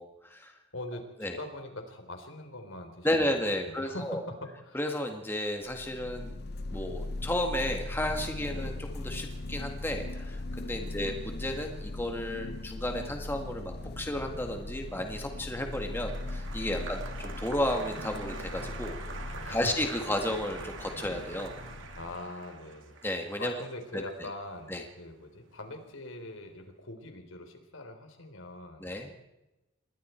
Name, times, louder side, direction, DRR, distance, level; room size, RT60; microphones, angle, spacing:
voice 1, 0.0-0.5 1.2-1.4 3.0-4.2 4.7-6.3 6.7-19.0 19.4-21.6 23.0-23.6 23.9-24.3 24.7-24.8 28.8-29.1, left 1 dB, 10° left, 3 dB, 1.9 m, -33 dB
voice 2, 0.7-4.8 8.5-8.8 10.9-11.1 16.7-16.9 19.4-19.7 21.9-23.0 23.4-29.1, left 1 dB, 75° left, 6 dB, 3.9 m, -43 dB
sound 1, 5.6-22.2, left 2 dB, 50° left, 0.7 m, -39 dB
Applause, 15.1-25.5 25.7-26.4, right 4 dB, 65° right, 2.7 m, -46 dB
28.0 x 22.0 x 4.5 m, 1.0 s
head